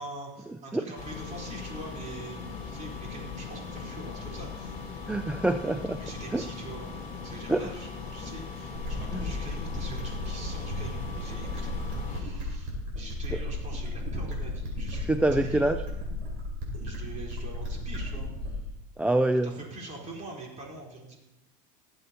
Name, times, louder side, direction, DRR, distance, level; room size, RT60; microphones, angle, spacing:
voice 1, 0.0-5.0 6.0-6.9 7.2-15.7 16.7-18.7 19.4-21.2, right 2 dB, 35° right, -2 dB, 3.8 m, -43 dB
sound 1, 0.9-12.2, left 5 dB, 35° left, 3.1 m, -39 dB
voice 2, 5.1-6.0 6.3-6.4 7.5-7.7 9.1-9.2 15.1-15.8 19.0-19.5, right 2 dB, 5° right, 9 dB, 0.3 m, -25 dB
sound 2, 8.7-18.7, left 1 dB, 50° right, 4.5 m, -34 dB
17.5 x 7.8 x 2.9 m, 0.89 s
supercardioid pair, 110°, 21 cm